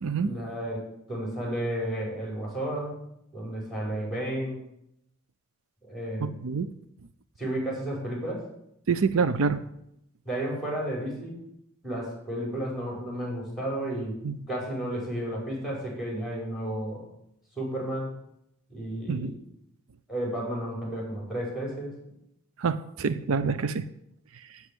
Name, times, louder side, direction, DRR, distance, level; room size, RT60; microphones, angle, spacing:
voice 1, 0.2-3.0 3.3-4.6 5.8-6.4 7.4-8.5 10.2-11.3 11.8-14.2 14.5-17.1 17.6-18.1 18.7-19.4 20.1-22.0, right 1 dB, ahead, -2 dB, 5.0 m, -32 dB
voice 2, 6.2-6.7 8.9-9.6 14.2-14.4 19.1-19.3 22.6-23.8, right 5 dB, 65° right, 12 dB, 0.5 m, -26 dB
8.4 x 8.1 x 8.3 m, 0.78 s
head